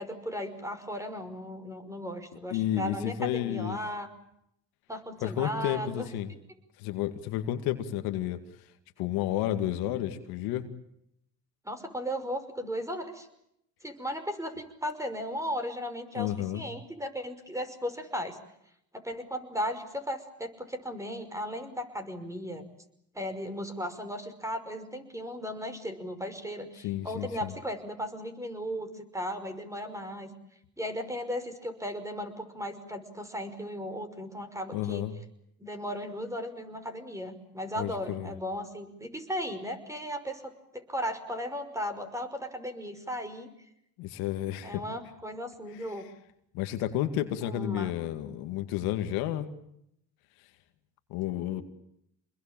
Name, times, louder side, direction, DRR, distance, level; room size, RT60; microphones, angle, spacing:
voice 1, 0.0-4.1 4.9-6.1 11.6-13.3 13.8-18.4 18.9-22.7 23.1-30.3 30.8-35.1 35.6-43.5 44.6-46.1 47.4-48.0, equal, 10° right, 9 dB, 5.6 m, -36 dB
voice 2, 2.5-3.8 5.2-6.3 6.8-8.4 9.0-10.7 16.1-16.7 26.8-27.5 34.7-35.2 37.8-38.3 44.0-44.8 46.5-49.5 51.1-51.6, left 12 dB, 80° left, 8 dB, 2.3 m, -31 dB
27.0 x 21.5 x 9.0 m, 0.76 s
supercardioid pair, 80°, 36 cm